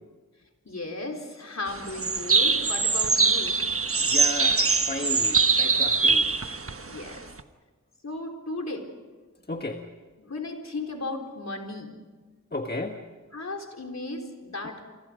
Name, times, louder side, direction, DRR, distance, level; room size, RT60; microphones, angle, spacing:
voice 1, 0.6-3.6 6.8-7.3 8.0-8.9 10.2-12.0 13.3-14.8, left 2 dB, 60° left, 2 dB, 4.0 m, -35 dB
sound 1, 1.7-7.4, right 4 dB, 45° right, 1.3 m, -23 dB
voice 2, 4.1-6.3 9.5-9.8 12.5-12.9, left 2 dB, 30° left, 4 dB, 1.6 m, -33 dB
29.0 x 25.0 x 5.2 m, 1.4 s
wide cardioid pair, 70°, 31 cm